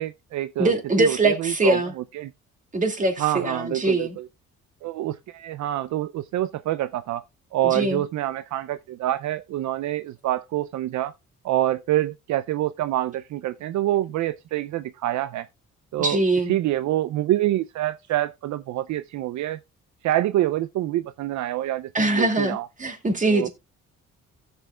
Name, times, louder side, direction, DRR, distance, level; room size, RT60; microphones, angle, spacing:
voice 1, 0.0-2.3 3.2-4.3 4.8-7.2 7.5-11.1 11.4-15.5 15.9-19.6 20.0-22.7 23.3-23.5, right 14 dB, 70° right, 0.5 m, -26 dB
voice 2, 0.6-1.9 2.7-4.1 7.6-8.0 16.0-16.6 21.9-23.5, right 2 dB, 25° right, 2.3 m, -23 dB
15.5 x 6.9 x 2.3 m
cardioid pair, 90°, 30 cm